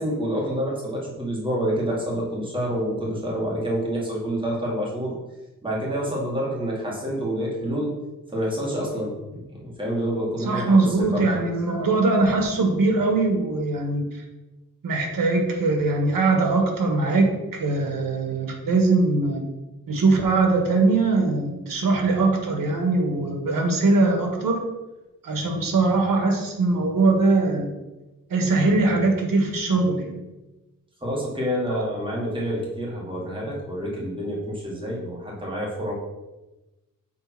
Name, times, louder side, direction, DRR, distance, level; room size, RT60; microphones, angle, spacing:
voice 1, 0.0-5.2 5.6-7.9 8.3-11.3 31.0-35.9, equal, 15° right, -4 dB, 2.3 m, -28 dB
voice 2, 10.5-14.2 14.8-17.3 17.6-19.4 19.9-24.6 25.2-27.7 28.3-30.1 31.7-31.8, right 3 dB, 85° right, 3 dB, 1.7 m, -21 dB
7.1 x 4.2 x 5.9 m, 1.1 s
wide cardioid pair, 140°, 33 cm